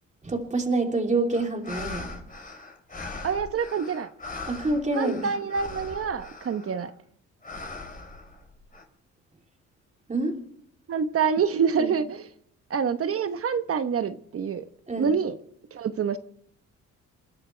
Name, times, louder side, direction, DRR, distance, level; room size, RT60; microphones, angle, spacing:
voice 1, 0.2-2.2 4.4-5.3 10.1-10.4 11.8-11.9 14.9-15.1, right 2 dB, 25° right, 3.1 m, -27 dB
sound 1, 1.3-6.9 7.4-8.8, left 3 dB, 30° left, 4.0 m, -40 dB
voice 2, 3.2-4.1 4.9-6.9 10.9-12.3 12.7-14.6 15.0-15.3 15.7-16.2, right 6 dB, 50° right, 1.1 m, -26 dB
29.5 x 11.5 x 3.4 m
cardioid pair, 90°, 30 cm